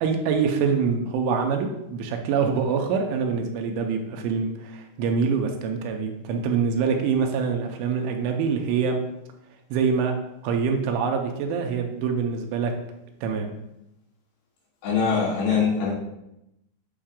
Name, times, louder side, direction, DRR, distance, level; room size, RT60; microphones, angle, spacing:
voice 1, 0.0-9.0 9.7-10.1 10.4-12.7 13.2-13.5, right 5 dB, 85° right, 3 dB, 2.8 m, -25 dB
voice 2, 14.8-15.9, left 6 dB, 60° left, -8 dB, 4.3 m, -22 dB
8.6 x 5.4 x 2.5 m, 0.85 s
omnidirectional pair, 5.8 m